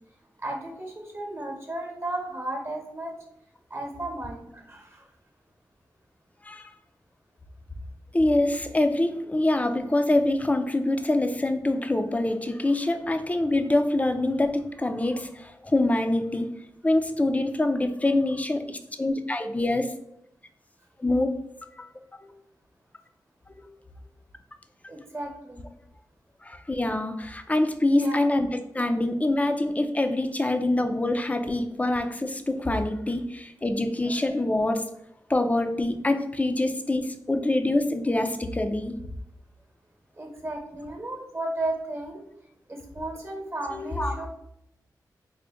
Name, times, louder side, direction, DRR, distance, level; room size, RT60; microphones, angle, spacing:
voice 1, 0.4-3.1 3.7-5.0 24.9-25.6 27.9-28.2 40.1-42.2 42.7-44.3, right 2 dB, 35° right, 2 dB, 1.0 m, -34 dB
voice 2, 8.1-16.5 16.8-19.9 21.0-21.3 21.8-21.9 22.2-22.3 23.6-23.7 26.4-28.5 28.7-34.9 35.3-39.0 43.7-44.3, left 2 dB, 20° left, 7 dB, 0.4 m, -25 dB
3.8 x 2.1 x 3.4 m, 0.80 s
cardioid pair, 55°, 7 cm